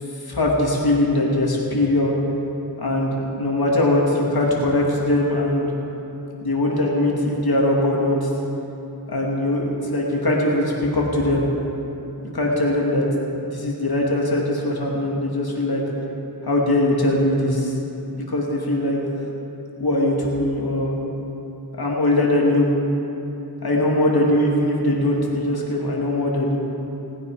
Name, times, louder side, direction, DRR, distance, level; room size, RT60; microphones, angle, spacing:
voice 1, 0.2-2.1 2.8-5.7 6.4-8.3 9.1-11.5 12.3-13.1 13.4-15.8 16.4-17.7 18.1-19.0 19.8-20.9 21.8-22.7 23.6-26.6, left 1 dB, 65° left, -3 dB, 2.8 m, -21 dB
19.0 x 9.5 x 5.1 m, 3.0 s
wide cardioid pair, 55°, 39 cm